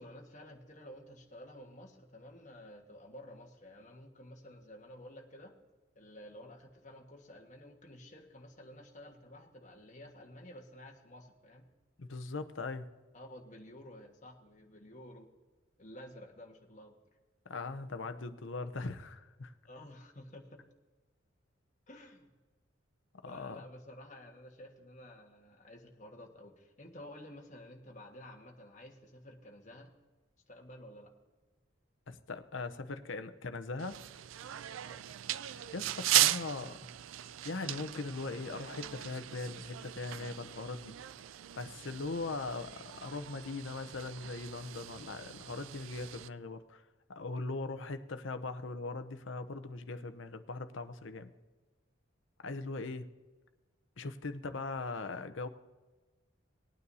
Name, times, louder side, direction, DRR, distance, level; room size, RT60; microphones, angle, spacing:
voice 1, 0.0-5.6 5.9-11.7 13.1-15.3 15.8-16.9 19.6-20.6 21.9-22.3 23.2-29.9 30.5-31.1 34.8-35.0, left 1 dB, 40° left, 1 dB, 1.6 m, -52 dB
voice 2, 12.0-12.9 17.5-19.5 23.2-23.6 32.1-34.0 35.5-36.8 37.4-41.0 41.6-46.8 47.1-51.3 52.4-53.1 54.0-55.5, left 3 dB, 80° left, 10 dB, 0.8 m, -40 dB
sound 1, 33.8-46.3, right 13 dB, 90° right, 0.4 m, -37 dB
20.0 x 9.4 x 2.8 m, 1.2 s
head